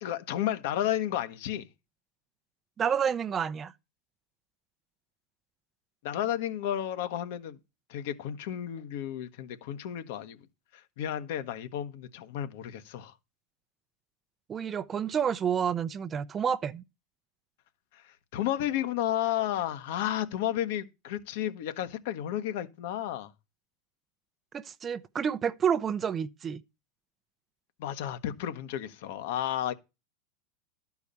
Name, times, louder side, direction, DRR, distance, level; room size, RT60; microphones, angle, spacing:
voice 1, 0.0-1.7 6.0-7.6 7.9-10.5 10.7-13.1 17.9-23.3 27.8-29.7, left 11 dB, 70° left, 1.2 m, -32 dB
voice 2, 2.8-3.7 14.5-16.8 24.5-26.6, right 7 dB, 25° right, 0.6 m, -29 dB
12.0 x 4.8 x 6.8 m
supercardioid pair, 120°, 0 cm